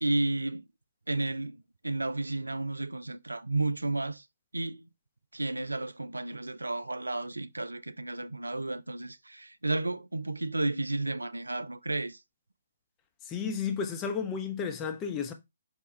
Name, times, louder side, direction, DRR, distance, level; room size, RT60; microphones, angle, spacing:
voice 1, 0.0-0.6 1.1-4.2 4.5-4.9 5.3-12.2, right 2 dB, 80° right, 0.3 m, -32 dB
voice 2, 13.2-15.3, left 6 dB, 20° left, 0.6 m, -32 dB
5.1 x 2.2 x 3.1 m
figure-of-eight pair, 135°, 0 cm